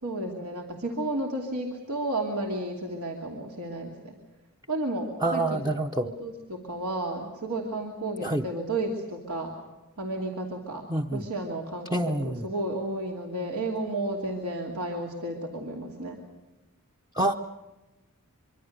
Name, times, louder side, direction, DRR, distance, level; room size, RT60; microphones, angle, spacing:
voice 1, 0.0-4.2 4.7-5.6 6.0-9.5 10.0-16.2, right 1 dB, 85° right, 0 dB, 2.8 m, -32 dB
voice 2, 5.2-6.1 8.2-8.4 10.9-11.2 11.9-12.5 17.2-17.3, right 1 dB, 15° right, 4 dB, 0.7 m, -27 dB
24.5 x 24.5 x 6.7 m, 1.1 s
head